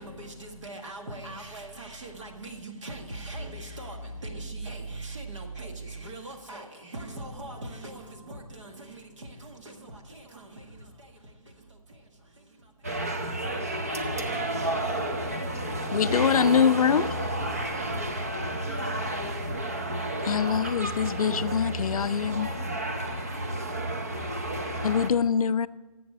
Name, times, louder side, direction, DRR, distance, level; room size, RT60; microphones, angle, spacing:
voice 1, 0.0-12.9, right 2 dB, 55° right, 1.8 m, -41 dB
sound 1, 12.8-25.1, right 1 dB, 25° right, 0.6 m, -31 dB
voice 2, 13.5-17.8 22.6-22.7 22.9-23.6, left 3 dB, 25° left, 1.3 m, -49 dB
voice 3, 15.9-17.1 20.2-22.5 24.8-25.7, left 7 dB, 75° left, 0.4 m, -24 dB
11.0 x 7.6 x 7.2 m
hypercardioid pair, 175°, 19 cm